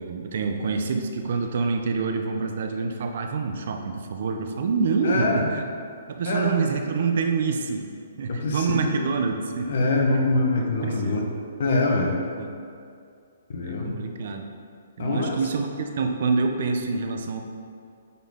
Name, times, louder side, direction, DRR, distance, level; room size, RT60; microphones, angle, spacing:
voice 1, 0.0-5.6 6.1-7.8 8.2-9.7 10.6-11.3 12.4-12.5 13.6-14.4 15.0-17.4, right 4 dB, 60° right, 4 dB, 0.7 m, -26 dB
voice 2, 5.0-5.5 6.2-6.5 8.3-9.1 9.6-11.2 11.6-12.1 13.5-14.0 15.0-15.4, left 2 dB, 65° left, 1 dB, 1.2 m, -24 dB
9.6 x 4.1 x 3.7 m, 2.4 s
hypercardioid pair, 150°, 0 cm